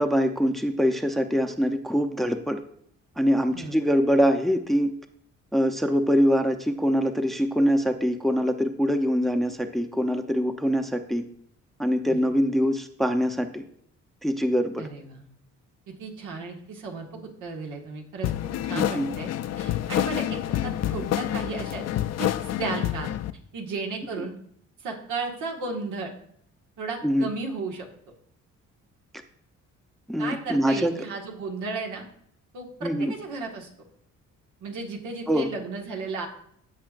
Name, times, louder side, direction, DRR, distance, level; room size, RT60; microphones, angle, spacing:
voice 1, 0.0-2.6 3.2-4.9 5.5-11.2 11.8-13.6 14.2-14.9 18.7-19.1 27.0-27.3 30.1-30.9 32.8-33.1 35.3-35.5, equal, ahead, 6 dB, 0.7 m, -24 dB
voice 2, 3.5-3.9 12.1-12.2 14.8-15.3 15.9-18.3 18.7-19.3 19.6-21.8 22.2-23.1 23.5-24.3 24.8-26.1 26.8-27.9 30.2-32.1 32.5-33.7 34.6-36.3, right 4 dB, 85° right, 1 dB, 1.8 m, -34 dB
sound 1, 18.2-23.3, left 12 dB, 60° left, 0.5 m, -28 dB
15.0 x 5.6 x 2.5 m, 0.66 s
cardioid pair, 90°, 30 cm